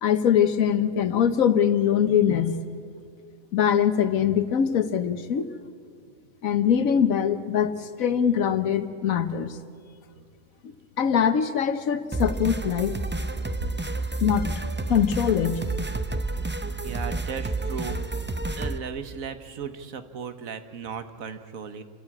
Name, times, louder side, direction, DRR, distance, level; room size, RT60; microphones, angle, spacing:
voice 1, 0.0-2.6 3.5-5.5 6.4-9.6 10.6-12.9 14.2-14.5 14.9-15.6, left 8 dB, 85° left, 12 dB, 1.4 m, -23 dB
sound 1, 12.1-18.8, right 2 dB, 15° right, 0.3 m, -30 dB
voice 2, 16.8-18.0 18.6-21.8, right 6 dB, 90° right, 10 dB, 1.6 m, -36 dB
28.0 x 14.0 x 8.6 m, 2.2 s
omnidirectional pair, 1.4 m